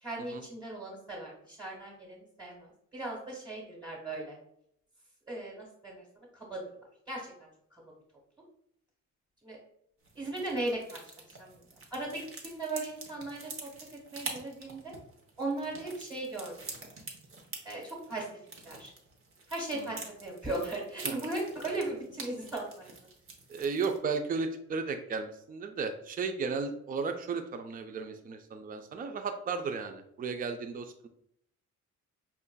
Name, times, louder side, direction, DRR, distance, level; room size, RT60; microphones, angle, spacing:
voice 1, 0.0-4.3 5.3-6.0 6.3-6.6 7.1-7.3 9.4-9.6 10.1-11.0 11.3-11.6 11.9-13.7 14.1-14.9 15.4-16.5 17.6-18.3 18.6-18.9 19.5-22.9, right 2 dB, 5° right, -3 dB, 1.4 m, -37 dB
sound 1, 10.0-24.0, right 3 dB, 45° right, 0.9 m, -46 dB
voice 2, 23.5-30.9, right 4 dB, 30° right, 7 dB, 0.4 m, -34 dB
5.5 x 2.4 x 2.2 m, 0.71 s
cardioid pair, 90°, 30 cm